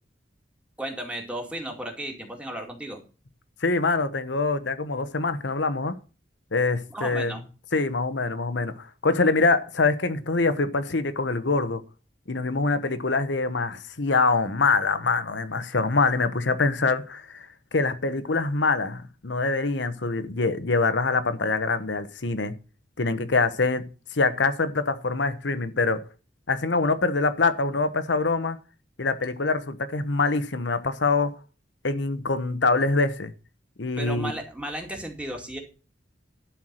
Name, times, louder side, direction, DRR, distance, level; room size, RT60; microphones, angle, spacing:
voice 1, 0.8-3.0 6.9-7.4 34.0-35.6, right 1 dB, 5° right, 2.3 m, -34 dB
voice 2, 3.6-5.9 6.5-7.3 7.7-11.8 12.3-17.5 17.7-22.6 23.0-23.9 24.1-26.0 26.5-28.6 29.0-31.3 31.8-33.3 33.8-34.3, left 3 dB, 75° left, 1.0 m, -24 dB
11.5 x 4.7 x 7.6 m
head